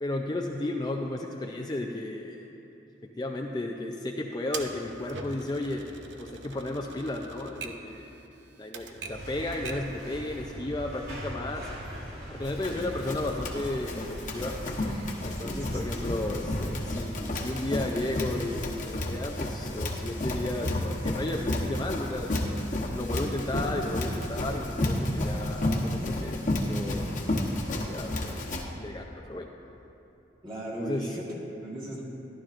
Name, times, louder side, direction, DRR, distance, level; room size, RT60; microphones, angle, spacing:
voice 1, 0.0-2.5 3.0-5.8 6.2-8.2 8.6-11.7 12.3-14.6 15.2-22.3 22.8-26.4 26.7-27.1 27.9-28.5 28.8-29.5 30.8-31.2, left 2 dB, 25° left, 1 dB, 0.4 m, -34 dB
Typewriter, 4.5-10.0, right 4 dB, 80° right, 0.7 m, -43 dB
sound 1, 9.1-16.9, equal, 60° right, 2.0 m, -41 dB
Run, 12.5-28.6, left 1 dB, 45° left, 1.1 m, -31 dB
voice 2, 15.4-16.0 30.4-32.0, right 1 dB, 30° right, -6 dB, 2.0 m, -37 dB
14.5 x 11.5 x 2.5 m, 2.9 s
head